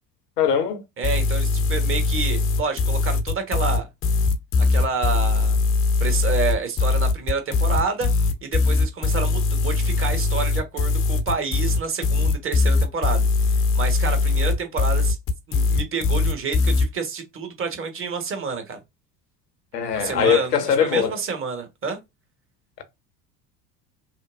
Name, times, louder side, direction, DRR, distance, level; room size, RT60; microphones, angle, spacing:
voice 1, 0.4-0.8 19.7-21.1, left 8 dB, 75° left, 1.0 m, -21 dB
sound 1, 1.0-16.9, left 3 dB, 25° left, 0.7 m, -21 dB
voice 2, 1.0-3.9 4.6-5.6 6.0-8.1 8.4-15.2 15.5-18.8 19.9-22.0, right 5 dB, 25° right, 1.3 m, -29 dB
5.7 x 2.0 x 2.6 m
figure-of-eight pair, 70°, 49 cm